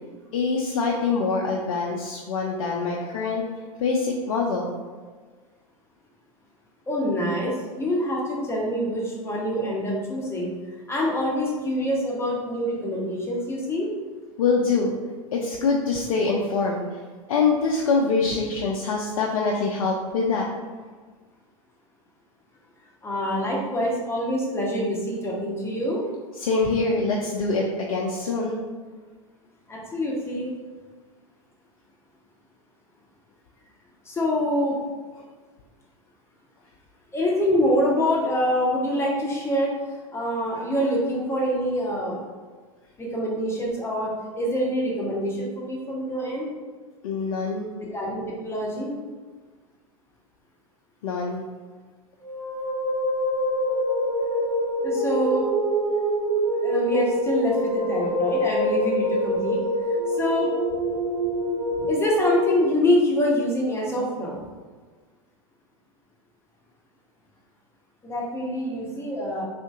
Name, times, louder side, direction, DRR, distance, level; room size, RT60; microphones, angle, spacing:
voice 1, 0.3-3.4 3.8-4.7 14.4-14.9 15.3-16.8 17.3-20.5 26.4-28.6 47.0-47.7 51.0-51.4, left 4 dB, 65° left, -1 dB, 0.5 m, -24 dB
voice 2, 6.9-10.5 10.9-13.9 23.0-26.0 29.7-30.5 34.0-34.8 37.1-42.2 43.0-46.5 47.9-49.0 54.8-55.5 56.6-59.6 59.9-60.5 61.9-64.4 68.0-69.4, equal, 15° left, -3 dB, 0.8 m, -25 dB
sound 1, 52.2-62.5, equal, 45° right, 1.4 m, -25 dB
3.6 x 2.5 x 2.4 m, 1.4 s
hypercardioid pair, 95°, 18 cm